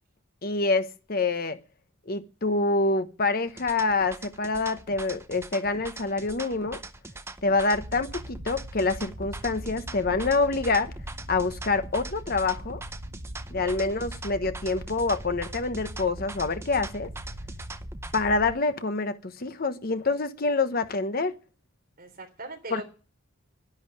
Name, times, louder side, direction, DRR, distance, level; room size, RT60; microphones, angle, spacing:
voice 1, 0.4-1.6 2.1-6.8 7.4-10.9 11.3-12.8 13.5-17.1 18.1-21.3 22.7-22.8, left 3 dB, 45° left, 1.0 m, -26 dB
sound 1, 3.5-18.3, right 2 dB, 10° right, 0.7 m, -42 dB
sound 2, 7.7-18.5, equal, 85° right, 2.3 m, -41 dB
voice 2, 22.0-22.8, right 2 dB, 45° right, 3.4 m, -40 dB
11.0 x 11.0 x 9.8 m
head